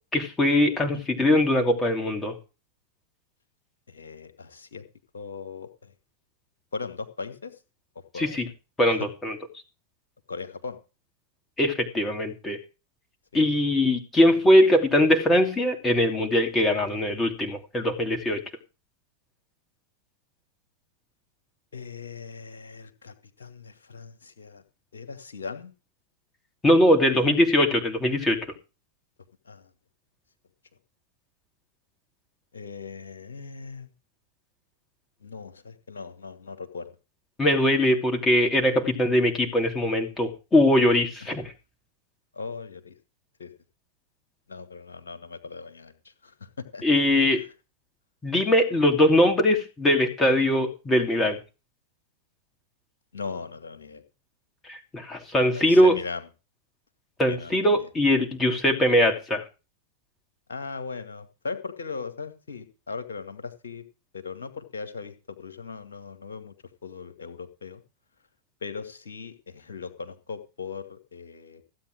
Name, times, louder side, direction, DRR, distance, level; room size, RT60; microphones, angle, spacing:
voice 1, 0.1-2.4 8.1-8.5 8.8-9.4 11.6-12.6 13.3-18.4 26.6-28.4 37.4-41.5 46.8-47.4 48.2-51.4 54.7-56.0 57.2-59.4, left 1 dB, 15° left, 4 dB, 2.9 m, -21 dB
voice 2, 3.9-4.8 5.1-5.7 6.7-7.5 8.1-8.4 10.3-10.8 13.3-13.5 21.7-24.6 24.9-25.7 27.1-27.3 29.5-29.6 32.5-33.9 35.2-36.9 42.3-42.9 43.4-43.5 44.5-45.9 46.2-46.8 53.1-54.0 55.4-56.2 57.3-57.6 60.5-63.8 64.1-66.5 66.8-67.8 68.6-71.6, left 4 dB, 70° left, 9 dB, 2.1 m, -38 dB
16.0 x 8.5 x 4.9 m, 0.31 s
figure-of-eight pair, 90°, 0 cm